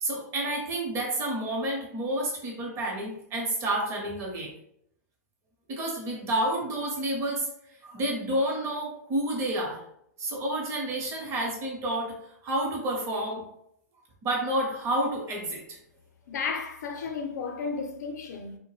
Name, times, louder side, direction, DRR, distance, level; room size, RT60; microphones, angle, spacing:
voice 1, 0.0-4.5 5.7-7.5 7.8-9.8 10.2-12.1 12.4-13.4 14.2-15.8, right 1 dB, 30° right, 0.8 m, -29 dB
voice 2, 16.3-18.6, left 5 dB, 70° left, 0.6 m, -33 dB
2.2 x 2.1 x 3.1 m
hypercardioid pair, 130°, 9 cm